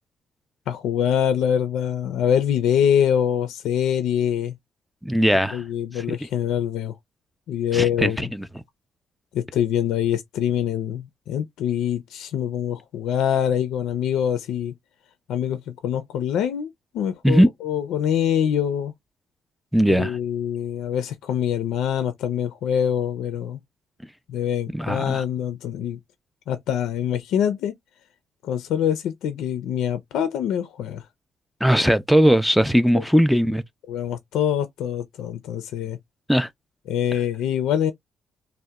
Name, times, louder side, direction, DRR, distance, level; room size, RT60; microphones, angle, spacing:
voice 1, 0.7-4.5 5.5-7.0 7.5-8.3 9.3-14.7 15.3-18.9 19.9-23.6 24.3-26.0 26.5-27.7 28.4-31.0 33.0-33.1 33.9-36.0 36.9-37.9, left 9 dB, 85° left, 0.4 m, -24 dB
voice 2, 5.0-5.6 6.1-6.2 7.7-8.5 17.2-17.5 19.7-20.2 24.7-25.2 31.6-33.6 36.3-36.5, equal, ahead, 0.3 m, -19 dB
2.7 x 2.0 x 2.2 m
cardioid pair, 90°, 0 cm